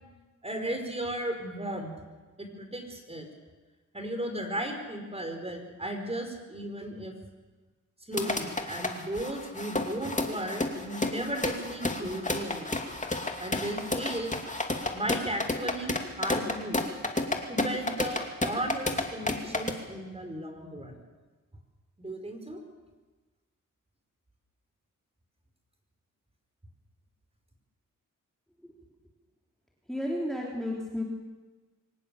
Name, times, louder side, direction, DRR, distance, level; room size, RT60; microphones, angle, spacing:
voice 1, 0.4-1.9 2.4-3.3 3.9-7.1 8.1-12.8 13.4-14.3 14.9-16.8 17.5-21.0 22.0-22.6, right 1 dB, 20° right, 5 dB, 5.1 m, -35 dB
sound 1, 8.1-19.7, left 2 dB, 25° left, 2.6 m, -31 dB
voice 2, 29.9-31.0, left 1 dB, ahead, -2 dB, 3.3 m, -32 dB
24.0 x 18.0 x 7.1 m, 1.3 s
cardioid pair, 65°, 32 cm